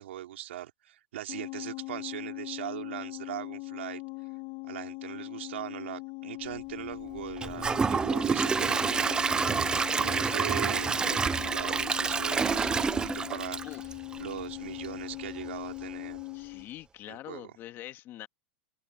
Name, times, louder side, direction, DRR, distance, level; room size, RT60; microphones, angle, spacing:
voice 1, 0.0-4.0 4.7-9.2 9.9-13.6 14.2-16.2 17.1-17.5, right 13 dB, 90° right, 3.8 m, -40 dB
sound 1, 1.3-16.7, left 32 dB, 55° left, 1.7 m, -40 dB
Gurgling / Toilet flush / Trickle dribble, 7.4-14.4 14.8-14.9 15.4-15.5, right 5 dB, 15° right, 0.4 m, -28 dB
voice 2, 16.3-18.3, left 14 dB, 35° left, 1.9 m, -44 dB
open air
supercardioid pair, 145°, 6 cm